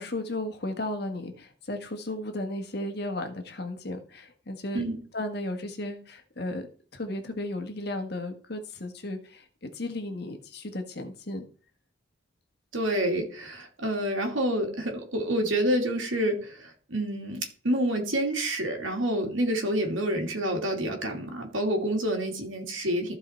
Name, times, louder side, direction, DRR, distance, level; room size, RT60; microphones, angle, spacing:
voice 1, 0.0-4.8 5.1-6.7 6.9-11.5, left 1 dB, 55° left, 6 dB, 1.5 m, -34 dB
voice 2, 12.7-23.1, right 1 dB, 85° right, 2 dB, 2.5 m, -28 dB
14.5 x 4.9 x 4.4 m, 0.43 s
head